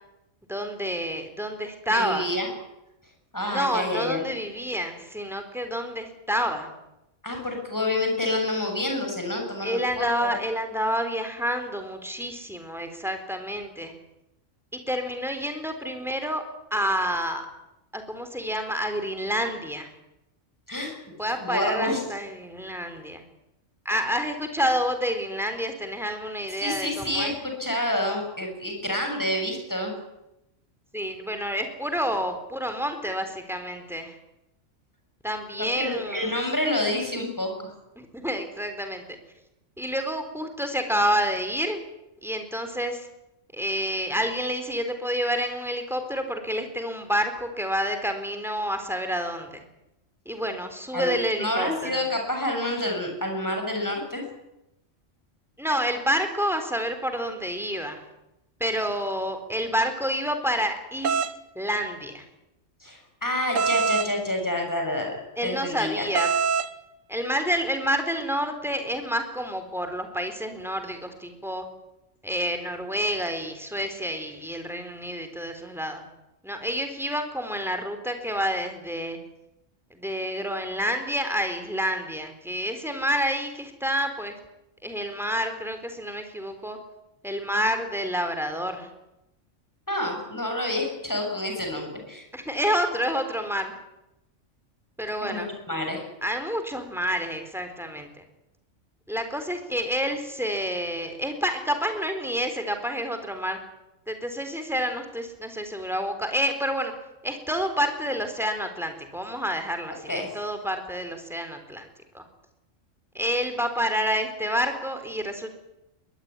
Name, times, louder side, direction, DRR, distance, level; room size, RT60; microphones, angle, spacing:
voice 1, 0.5-2.3 3.5-6.7 9.6-13.9 14.9-16.4 16.7-17.5 17.9-19.9 21.2-23.2 23.9-27.4 30.9-34.1 35.2-36.4 38.0-39.0 39.8-41.8 42.2-43.1 43.5-49.6 50.3-52.0 55.6-58.0 58.6-61.3 61.6-62.2 65.4-66.3 67.1-71.7 72.2-76.0 76.4-79.2 79.9-84.4 84.8-86.8 87.2-88.9 92.3-93.8 95.0-95.5 96.2-98.1 99.1-103.6 104.1-106.9 107.2-111.9 112.1-112.2 113.1-115.5, equal, ahead, 7 dB, 4.0 m, -28 dB
voice 2, 1.9-2.5 3.3-4.2 7.2-10.3 20.7-20.9 21.4-22.0 26.6-29.9 35.8-37.7 50.9-51.1 51.4-54.2 62.8-65.2 65.4-66.1 89.9-92.3 95.2-96.0 110.1-110.3, left 1 dB, 15° left, 2 dB, 7.2 m, -28 dB
sound 1, 61.0-61.3 63.6-64.1 66.1-66.7, right 6 dB, 85° right, 1.5 m, -24 dB
22.5 x 20.0 x 9.9 m, 0.91 s
omnidirectional pair, 1.3 m